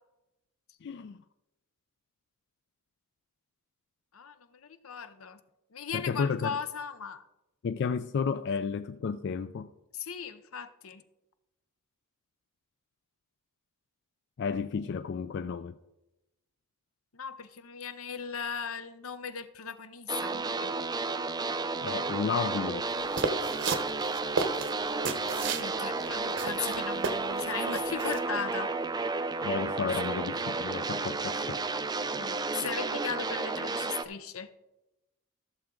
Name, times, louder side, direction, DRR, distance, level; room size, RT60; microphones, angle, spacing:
voice 1, 0.8-1.2 5.9-6.6 7.6-9.7 14.4-15.8 21.8-23.1 29.4-31.6, left 5 dB, 55° left, 0.4 m, -32 dB
voice 2, 4.1-5.4 5.7-7.2 9.9-11.0 17.1-20.7 25.3-28.7 32.1-34.5, left 6 dB, 80° left, 0.8 m, -38 dB
sound 1, 20.1-34.0, right 3 dB, 20° right, 0.4 m, -32 dB
sound 2, 23.2-25.7 26.1-26.2 26.4-27.4 27.7-28.2, right 4 dB, 60° right, 0.9 m, -32 dB
14.5 x 7.1 x 3.8 m
head